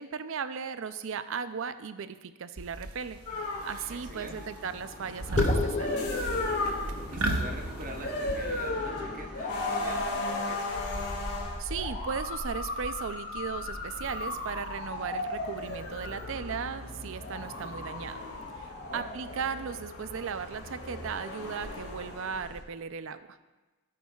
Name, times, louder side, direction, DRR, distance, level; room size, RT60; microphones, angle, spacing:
voice 1, 0.0-3.2 3.6-6.0 11.6-18.3 18.6-23.4, right 6 dB, 60° right, 12 dB, 0.4 m, -37 dB
sound 1, 2.6-3.2 3.6-4.2 4.5-4.8 5.2-8.7, right 1 dB, 75° right, 0.9 m, -33 dB
sound 2, 3.3-22.6, left 2 dB, 80° left, 2.1 m, -36 dB
voice 2, 3.9-4.4 7.1-10.9 18.8-19.1, right 1 dB, 35° right, 2 dB, 0.9 m, -44 dB
sound 3, 5.4-10.2, left 3 dB, 30° left, 0.5 m, -35 dB
15.5 x 8.4 x 2.4 m, 1.2 s
head